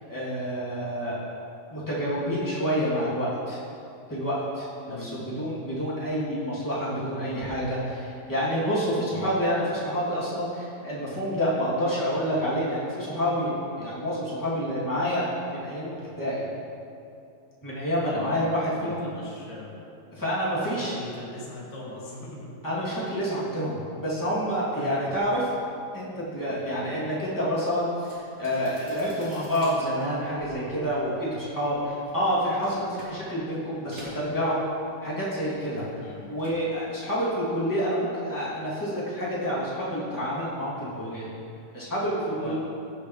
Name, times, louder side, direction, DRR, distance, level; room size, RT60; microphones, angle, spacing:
voice 1, 0.1-1.2 1.7-3.6 4.1-15.2 15.6-16.4 17.6-19.1 20.1-20.9 22.6-25.4 25.9-34.6 35.0-35.8 36.3-41.3 41.7-42.6, equal, 5° left, -9 dB, 2.1 m, -28 dB
voice 2, 4.9-5.4 9.1-9.3 18.1-18.6 18.8-19.8 20.6-22.6 22.8-23.0 24.7-25.2 26.8-27.1 36.0-36.4 42.4-42.6, left 2 dB, 75° left, -4 dB, 3.6 m, -40 dB
sound 1, 27.9-35.2 35.4-36.7 37.0-37.4, equal, 30° right, 3.0 m, -49 dB
16.5 x 7.0 x 3.3 m, 2.6 s
omnidirectional pair, 3.8 m